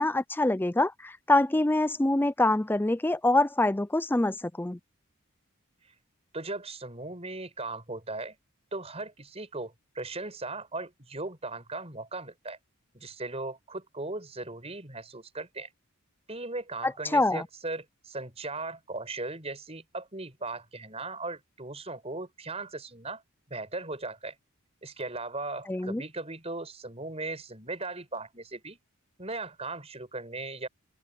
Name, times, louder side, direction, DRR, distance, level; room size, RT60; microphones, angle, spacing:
voice 1, 0.0-4.8 16.8-17.5 25.7-26.0, left 2 dB, 10° left, 0.4 m, -25 dB
voice 2, 6.3-8.3 8.7-12.6 12.9-15.7 16.3-23.2 23.5-24.3 24.8-28.8 29.2-30.7, right 2 dB, 30° right, 6.2 m, -38 dB
open air
head